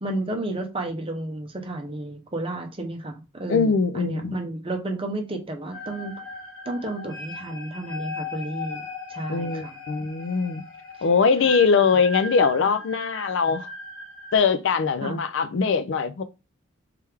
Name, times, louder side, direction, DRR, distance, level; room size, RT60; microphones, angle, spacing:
voice 1, 0.0-6.2 6.7-9.8 15.0-15.2, right 1 dB, 25° right, 0.7 m, -32 dB
voice 2, 3.5-4.4 9.3-10.6 11.0-13.7 14.3-16.2, left 5 dB, 65° left, 0.4 m, -22 dB
sound 1, 5.7-14.4, left 3 dB, 85° left, 1.7 m, -38 dB
3.3 x 3.3 x 3.3 m
head